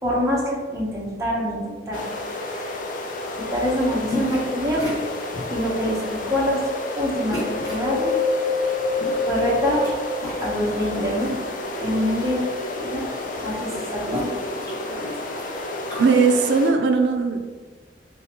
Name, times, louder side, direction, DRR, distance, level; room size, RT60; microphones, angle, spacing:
voice 1, 0.0-2.1 2.4-2.8 3.4-5.0 5.5-6.6 6.9-8.1 9.3-9.9 10.4-11.3 11.7-13.0 13.4-14.3, equal, 20° right, -4 dB, 0.7 m, -25 dB
sound 1, 1.9-16.7, left 2 dB, 50° left, 0.4 m, -31 dB
sound 2, 4.1-4.5 4.8-5.6 6.1-6.4 7.3-7.9 8.8-9.9 10.2-11.3 11.7-12.4 12.7-12.8 13.0-16.1, left 1 dB, 20° left, 1.2 m, -34 dB
Wind, 7.4-11.0 11.5-12.8 13.3-13.4, left 4 dB, 50° right, 1.1 m, -27 dB
voice 2, 16.0-17.4, right 4 dB, 75° right, 6 dB, 0.3 m, -18 dB
3.8 x 2.8 x 2.8 m, 1.4 s
head